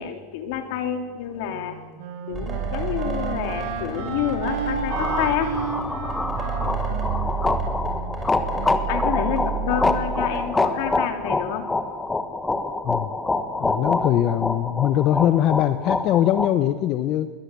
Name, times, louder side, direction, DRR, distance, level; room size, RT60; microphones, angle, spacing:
voice 1, 0.0-1.8 2.3-5.5 8.6-11.6, left 9 dB, 65° left, 6 dB, 3.2 m, -28 dB
Wind instrument woodwind instrument, 1.5-8.7, right 5 dB, 65° right, 4.7 m, -33 dB
sound 1, 2.3-11.0, right 5 dB, 20° right, 5.8 m, -30 dB
sound 2, 4.9-16.5, left 3 dB, 10° left, 1.5 m, -26 dB
voice 2, 13.6-17.3, left 12 dB, 40° left, 11 dB, 0.8 m, -21 dB
22.0 x 19.5 x 8.5 m, 1.5 s
supercardioid pair, 155°, 0 cm